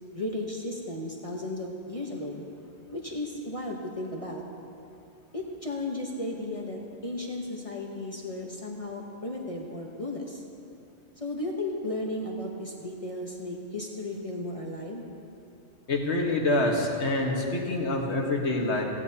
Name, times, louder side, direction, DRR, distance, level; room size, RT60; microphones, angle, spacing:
voice 1, 0.1-2.4 2.9-4.4 5.3-10.4 11.2-15.0, left 2 dB, 35° left, -1 dB, 1.1 m, -35 dB
voice 2, 15.9-18.8, left 2 dB, 85° left, 0 dB, 1.7 m, -26 dB
16.5 x 15.5 x 2.8 m, 2.7 s
omnidirectional pair, 1.1 m